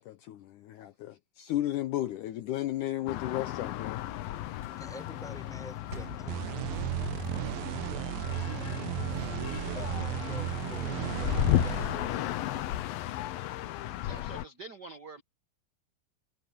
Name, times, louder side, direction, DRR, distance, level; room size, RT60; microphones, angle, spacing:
voice 1, 0.0-4.0, left 14 dB, 75° left, 2.1 m, -34 dB
Sliding door / Slam, 2.5-9.5, right 2 dB, 30° right, 2.0 m, -53 dB
sound 1, 3.1-14.5, left 14 dB, 90° left, 2.7 m, -34 dB
voice 2, 4.8-6.4 9.7-12.6, equal, ahead, 5.3 m, -47 dB
sound 2, 6.3-12.7, right 16 dB, 85° right, 2.4 m, -35 dB
voice 3, 8.0-9.2 12.5-12.8 14.0-15.2, right 3 dB, 55° right, 1.1 m, -49 dB
omnidirectional pair, 4.1 m